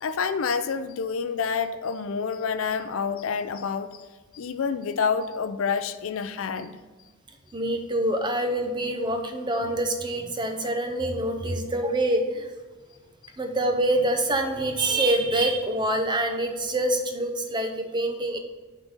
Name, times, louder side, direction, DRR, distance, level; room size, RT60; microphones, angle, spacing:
voice 1, 0.0-4.0 4.3-6.8, left 6 dB, 65° left, 11 dB, 0.4 m, -28 dB
voice 2, 7.5-12.5 13.4-18.4, right 1 dB, 20° right, 5 dB, 0.6 m, -26 dB
7.3 x 3.8 x 6.3 m, 1.3 s
head